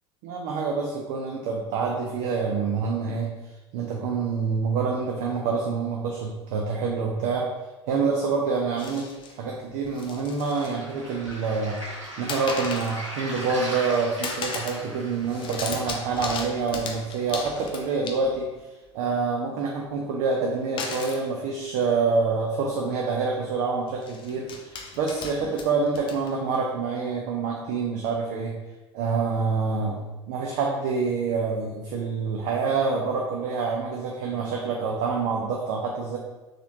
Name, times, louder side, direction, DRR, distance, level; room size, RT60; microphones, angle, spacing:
voice 1, 0.2-3.3 3.7-7.5 7.9-11.8 12.2-18.5 18.9-28.6 28.9-36.2, right 4 dB, 50° right, -1 dB, 0.5 m, -27 dB
sound 1, 8.8-9.3 9.8-10.8 11.1-11.6 12.3-13.0 13.4-13.9 14.2-14.9 15.1-18.5 20.8-21.2 22.2-22.3 22.6-22.8 23.9-26.6, left 4 dB, 35° left, 0.6 m, -36 dB
Waves surf, 10.4-16.4, right 1 dB, 90° right, 1.0 m, -38 dB
3.9 x 3.2 x 2.8 m, 1.2 s
figure-of-eight pair, 75°, 15 cm